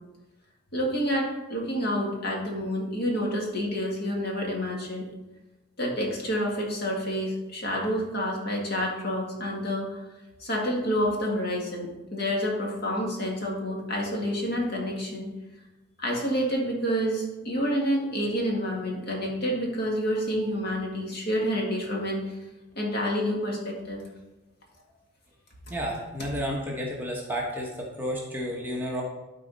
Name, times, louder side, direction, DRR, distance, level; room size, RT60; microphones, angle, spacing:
voice 1, 0.7-5.1 5.8-10.0 10.4-15.3 16.0-22.4 22.8-24.0, equal, 50° left, -1 dB, 1.8 m, -28 dB
voice 2, 25.7-29.0, equal, 10° right, -2 dB, 1.1 m, -31 dB
12.5 x 4.2 x 4.0 m, 1.0 s
head